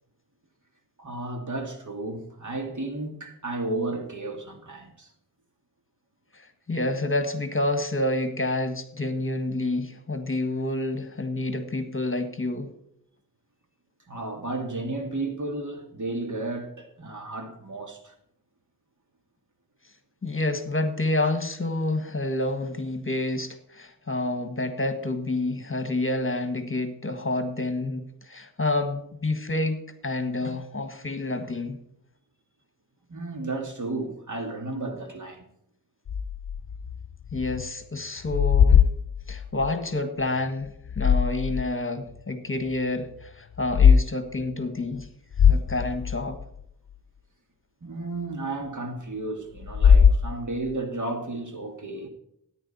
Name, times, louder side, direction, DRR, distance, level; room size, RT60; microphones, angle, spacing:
voice 1, 1.0-5.1 14.1-18.1 33.1-35.5 47.8-52.1, right 2 dB, 55° right, 2.3 m, -33 dB
voice 2, 6.3-12.7 20.2-31.8 37.3-38.9 39.3-45.1 45.5-46.4, left 2 dB, 35° left, 1.7 m, -28 dB
sound 1, 36.1-37.7 38.0-39.8 40.7-41.7 42.2-42.3 43.5-44.0 44.4-44.5 45.0-45.1 45.3-46.6 49.6-50.7, left 7 dB, 60° left, 0.5 m, -20 dB
14.0 x 10.0 x 4.3 m
wide cardioid pair, 75°, 36 cm